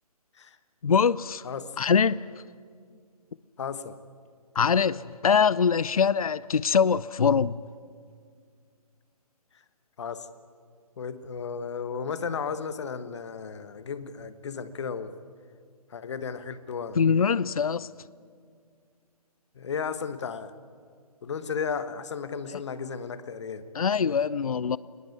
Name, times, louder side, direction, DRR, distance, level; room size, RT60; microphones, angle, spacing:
voice 1, 0.8-1.4 1.8-2.3 4.6-7.6 17.0-17.9 23.7-24.8, left 6 dB, 65° left, 0.6 m, -23 dB
voice 2, 1.4-1.8 3.6-4.0 10.0-10.3 11.0-15.2 15.9-17.0 19.5-20.5 21.2-23.7, left 6 dB, 45° left, 1.4 m, -34 dB
23.0 x 19.5 x 9.6 m
figure-of-eight pair, 140°, 20 cm